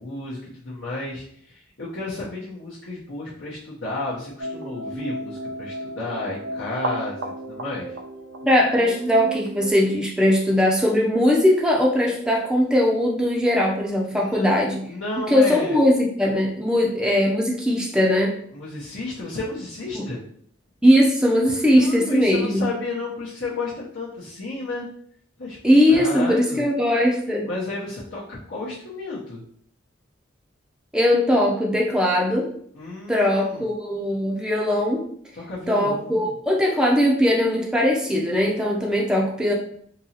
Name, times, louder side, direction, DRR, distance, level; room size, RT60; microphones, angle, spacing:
voice 1, 0.0-8.0 14.1-14.5 14.8-15.8 18.5-20.2 21.7-24.9 25.4-25.6 25.9-26.6 27.4-29.4 32.7-33.7 35.3-36.3, left 2 dB, 65° left, -7 dB, 0.8 m, -32 dB
sound 1, 4.4-9.7, right 1 dB, 65° right, 0.5 m, -33 dB
voice 2, 8.4-14.8 15.3-18.3 19.9-20.0 20.8-22.7 25.6-27.5 30.9-32.5 33.1-35.0 35.7-39.5, left 1 dB, 5° right, -2 dB, 0.5 m, -20 dB
3.8 x 2.9 x 2.8 m, 0.64 s
head